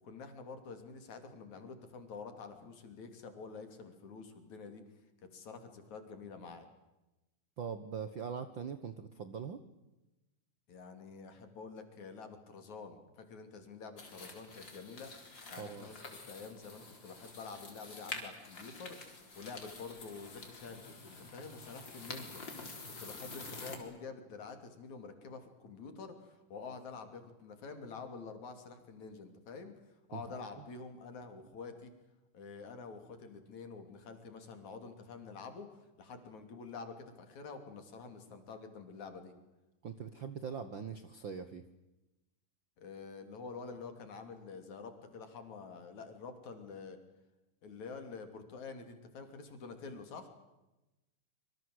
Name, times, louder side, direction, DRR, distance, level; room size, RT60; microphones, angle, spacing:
voice 1, 0.0-4.8 5.2-6.7 10.7-15.1 15.5-16.0 16.3-22.4 23.0-29.7 30.1-31.9 32.3-39.3 42.8-47.0 47.6-50.3, left 4 dB, 60° left, 7 dB, 4.2 m, -48 dB
voice 2, 7.6-9.6 15.6-15.9 30.1-30.2 30.6-30.7 39.8-41.6, right 6 dB, 55° right, 11 dB, 1.3 m, -42 dB
sound 1, 14.0-23.8, left 3 dB, 35° left, 4.5 m, -48 dB
26.0 x 25.0 x 7.9 m, 1.0 s
omnidirectional pair, 3.8 m